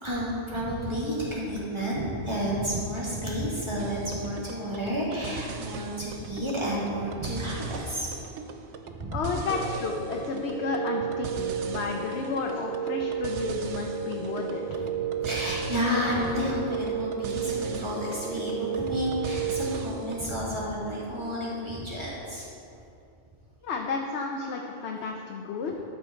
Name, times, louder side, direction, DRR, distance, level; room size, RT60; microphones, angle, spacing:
voice 1, 0.0-8.1 8.8-9.2 15.2-22.5, equal, 25° right, -7 dB, 2.4 m, -31 dB
sound 1, 3.8-20.3, right 6 dB, 80° right, 0.9 m, -41 dB
voice 2, 9.1-14.8 23.6-25.8, left 4 dB, 70° left, 1 dB, 1.0 m, -32 dB
sound 2, 9.5-20.0, right 7 dB, 50° right, 1.1 m, -33 dB
13.0 x 5.7 x 4.4 m, 2.7 s
omnidirectional pair, 1.2 m